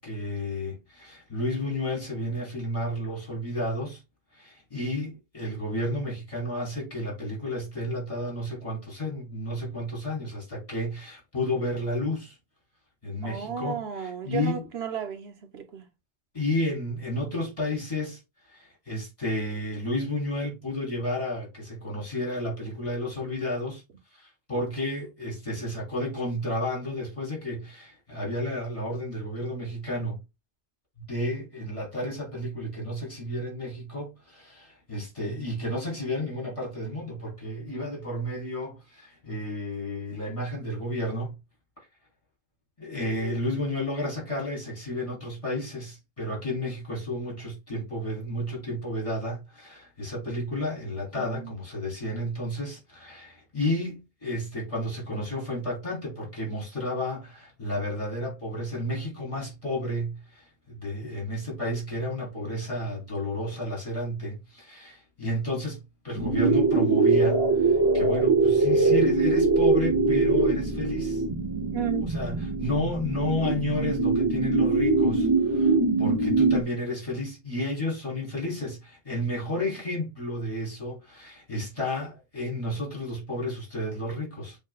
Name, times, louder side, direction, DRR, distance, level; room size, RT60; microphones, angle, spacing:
voice 1, 0.0-4.0 4.3-12.3 13.0-14.6 16.3-18.2 18.5-23.8 24.1-30.2 31.1-41.3 42.8-71.2 72.0-84.6, left 1 dB, 30° left, 3.2 m, -32 dB
voice 2, 13.2-15.9 51.2-51.6 71.7-72.1, right 7 dB, 75° right, 1.2 m, -34 dB
sound 1, 66.1-76.6, right 3 dB, 30° right, 0.5 m, -23 dB
7.5 x 2.8 x 2.3 m
omnidirectional pair, 1.1 m